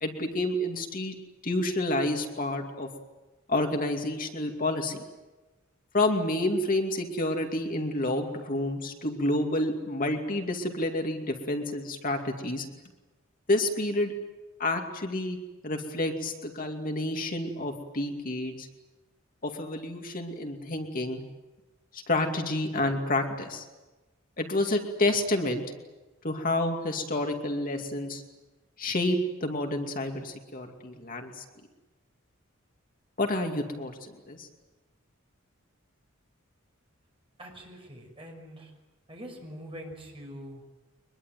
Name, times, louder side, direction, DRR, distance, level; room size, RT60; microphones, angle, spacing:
voice 1, 0.0-1.2 1.4-2.9 3.5-5.0 5.9-12.7 13.5-14.1 14.6-15.4 15.6-18.7 19.4-21.2 21.9-23.6 24.4-25.6 26.2-28.2 28.8-31.4 33.2-34.5, left 1 dB, 40° left, 3 dB, 2.5 m, -29 dB
voice 2, 37.4-38.7 39.1-40.6, equal, 25° right, 1 dB, 6.1 m, -44 dB
23.5 x 22.0 x 9.3 m, 1.1 s
head